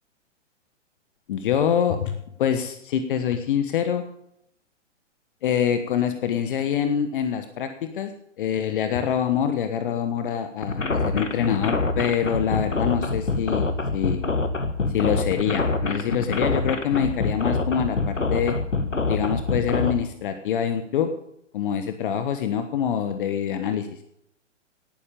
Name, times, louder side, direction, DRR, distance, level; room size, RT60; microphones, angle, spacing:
voice 1, 1.3-4.0 5.4-8.1 8.4-14.2 14.9-18.6 19.1-21.1 21.5-23.9, left 8 dB, 45° left, 8 dB, 1.3 m, -25 dB
sound 1, 10.6-19.9, left 3 dB, 80° left, 1.8 m, -25 dB
18.0 x 10.0 x 5.3 m, 0.76 s
figure-of-eight pair, 120°, 37 cm